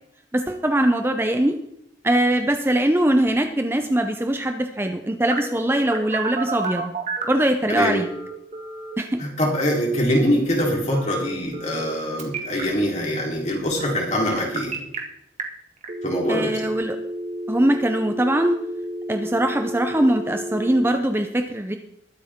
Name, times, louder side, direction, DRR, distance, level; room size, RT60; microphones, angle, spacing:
voice 1, 0.3-1.6 2.0-6.9 7.3-8.1 9.0-9.2 16.3-17.0 17.5-18.6 19.1-21.8, right 1 dB, 15° right, 6 dB, 0.7 m, -21 dB
Telephone, 5.3-7.4 7.9-8.9 10.9-11.9 12.2-12.6 14.3-15.0 15.4-15.5 15.8-20.9, right 2 dB, 40° right, 1.9 m, -31 dB
voice 2, 7.7-8.0 9.2-14.8 16.0-16.6, equal, 40° left, -1 dB, 3.7 m, -23 dB
21.5 x 8.2 x 3.7 m, 0.77 s
head